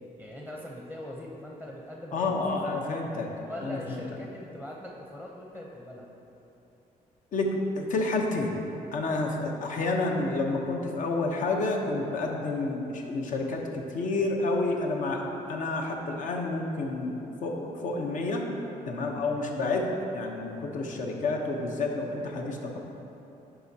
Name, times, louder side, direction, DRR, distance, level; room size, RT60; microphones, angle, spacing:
voice 1, 0.2-2.7 3.4-6.1, left 1 dB, 10° left, -2 dB, 0.7 m, -41 dB
voice 2, 2.1-3.3 3.6-4.0 7.3-8.6 8.9-18.5 18.9-22.8, left 2 dB, 65° left, 1 dB, 0.9 m, -29 dB
9.8 x 4.9 x 2.8 m, 3.0 s
cardioid pair, 95°, 14 cm